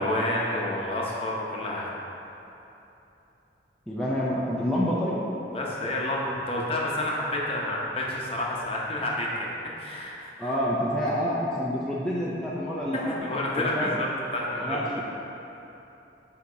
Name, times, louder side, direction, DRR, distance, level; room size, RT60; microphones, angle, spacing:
voice 1, 0.0-1.9 5.5-9.5 9.8-10.5 12.9-14.9, left 1 dB, 30° left, -3 dB, 0.8 m, -29 dB
voice 2, 3.9-5.2 10.4-13.2 13.5-13.9 14.6-14.8, equal, ahead, -7 dB, 0.5 m, -28 dB
8.1 x 2.9 x 5.0 m, 3.0 s
head